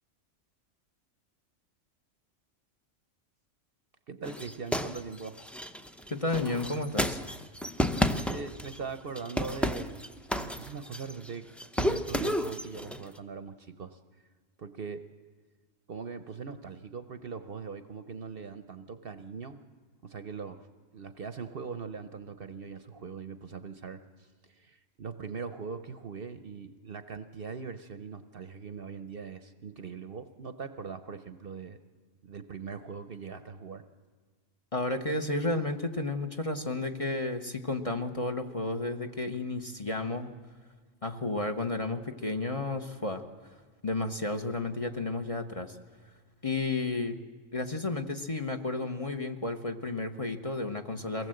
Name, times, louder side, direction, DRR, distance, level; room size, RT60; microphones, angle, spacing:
voice 1, 4.1-5.4 8.3-9.9 10.3-11.5 11.7-14.0 14.6-15.0 15.9-19.6 20.0-20.7 20.9-24.0 24.4-31.8 32.2-33.9, right 5 dB, 50° right, 10 dB, 0.9 m, -41 dB
sound 1, 4.2-8.8 9.2-11.3 11.6-13.0, equal, ahead, 0.5 m, -31 dB
voice 2, 6.1-7.2 34.7-40.3 41.0-43.2 43.8-45.8 46.4-47.2 47.5-51.3, left 2 dB, 30° left, 6 dB, 1.0 m, -32 dB
23.5 x 18.5 x 7.8 m, 1.5 s
omnidirectional pair, 1.4 m